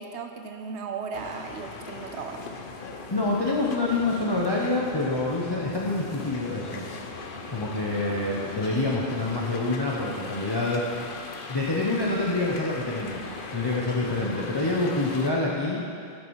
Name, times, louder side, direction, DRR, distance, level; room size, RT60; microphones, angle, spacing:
voice 1, 0.0-2.4, right 5 dB, 80° right, 5 dB, 1.1 m, -36 dB
sound 1, 1.1-15.3, left 3 dB, 55° left, 0.9 m, -39 dB
voice 2, 3.1-6.8 7.5-10.8 11.5-15.8, left 2 dB, 25° left, -5 dB, 0.8 m, -27 dB
12.5 x 6.3 x 4.7 m, 2.5 s
omnidirectional pair, 1.1 m